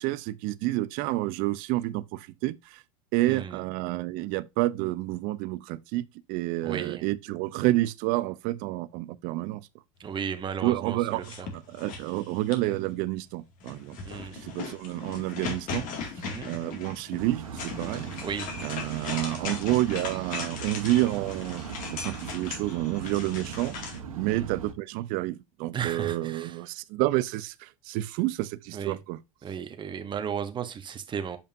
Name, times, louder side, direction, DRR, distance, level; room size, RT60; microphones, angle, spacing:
voice 1, 0.0-2.8 3.1-9.7 10.6-14.0 14.3-15.9 16.5-18.1 18.6-21.6 21.9-23.7 24.2-29.2, right 17 dB, 55° right, 0.6 m, -29 dB
voice 2, 3.2-3.6 6.6-7.0 10.0-11.5 14.0-14.4 16.2-16.5 18.2-18.5 24.2-24.5 25.7-26.6 28.7-29.0 29.4-31.4, right 7 dB, 25° right, 1.0 m, -35 dB
sound 1, 11.1-12.8 13.6-24.0, left 5 dB, 50° left, 2.2 m, -38 dB
sound 2, 17.2-24.7, right 6 dB, 90° right, 1.2 m, -40 dB
7.0 x 5.3 x 2.7 m
hypercardioid pair, 95°, 17 cm